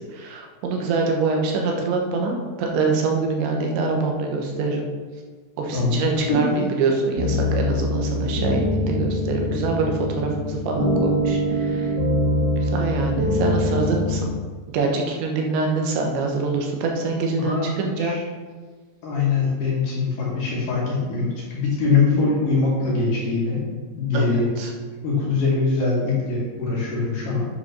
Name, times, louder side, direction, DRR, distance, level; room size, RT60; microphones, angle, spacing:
voice 1, 0.0-4.9 5.6-12.0 12.6-14.3 14.7-18.2 24.1-24.7, right 4 dB, 80° right, 1 dB, 3.5 m, -25 dB
voice 2, 5.7-6.6 17.3-18.2 19.0-23.6 24.0-24.5 25.0-27.5, left 4 dB, 50° left, -6 dB, 3.3 m, -23 dB
sound 1, 7.1-14.2, left 1 dB, 40° right, 3.0 m, -23 dB
10.5 x 4.9 x 6.0 m, 1.4 s
omnidirectional pair, 5.2 m